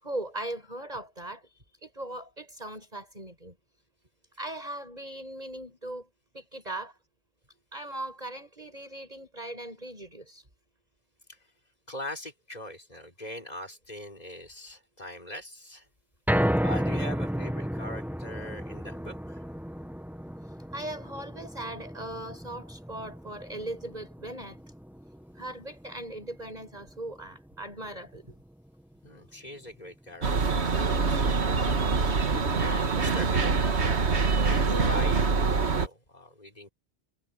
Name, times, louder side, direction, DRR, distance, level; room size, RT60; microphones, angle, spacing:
voice 1, 0.0-1.5 1.8-3.6 4.4-6.1 6.3-7.0 7.7-10.4 20.7-24.6 25.3-28.4 30.6-30.8 31.3-31.8, right 1 dB, 35° right, 6.6 m, -39 dB
voice 2, 11.9-15.9 16.6-19.4 29.0-31.8 32.6-33.6 33.8-36.7, left 1 dB, 35° left, 4.9 m, -42 dB
sound 1, 16.3-28.5 28.9-29.0 29.5-29.6, equal, ahead, 1.4 m, -33 dB
sound 2, 30.2-35.9, right 4 dB, 70° right, 1.9 m, -25 dB
omnidirectional pair, 1.2 m